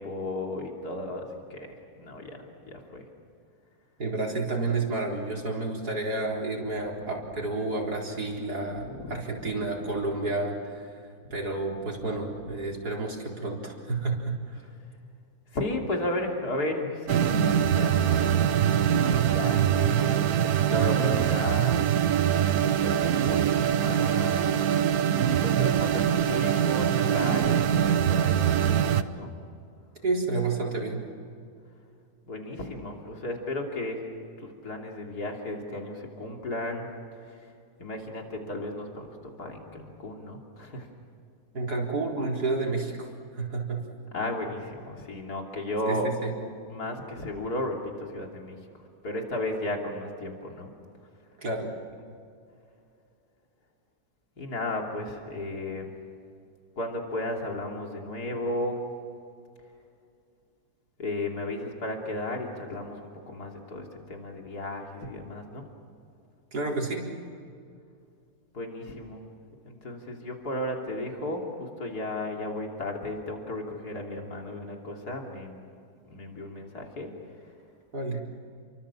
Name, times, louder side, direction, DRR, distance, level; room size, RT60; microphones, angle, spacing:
voice 1, 0.0-1.7 2.0-2.4 2.7-3.0 8.8-9.5 15.5-20.3 20.6-21.8 22.6-23.5 23.8-24.7 25.1-29.3 32.3-34.0 34.4-36.9 37.8-39.1 39.4-40.9 44.1-46.1 46.7-48.6 49.0-50.7 54.4-55.9 56.8-58.8 61.0-65.7 68.5-69.2 69.6-75.6 76.1-77.1, left 1 dB, 80° left, 1 dB, 3.6 m, -34 dB
voice 2, 4.0-10.9 11.3-14.6 20.7-21.3 30.0-31.0 41.5-43.8 45.9-46.3 51.4-51.7 66.5-67.1 77.9-78.2, right 3 dB, 90° right, -1 dB, 4.7 m, -30 dB
sound 1, 17.1-29.0, right 9 dB, 70° right, 1.4 m, -23 dB
30.0 x 23.5 x 7.3 m, 2.4 s
omnidirectional pair, 1.6 m